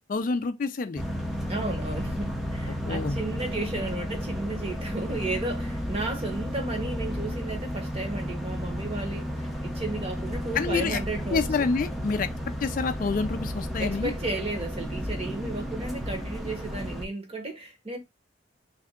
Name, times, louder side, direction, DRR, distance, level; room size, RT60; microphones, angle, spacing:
voice 1, 0.1-1.0 2.7-3.2 10.5-11.0 11.3-12.3 12.6-14.1, left 4 dB, 45° left, 0.3 m, -27 dB
sound 1, 1.0-17.0, equal, ahead, 0.6 m, -33 dB
voice 2, 1.5-11.7 13.8-18.0, right 2 dB, 30° right, 1.0 m, -34 dB
3.4 x 2.6 x 3.5 m
head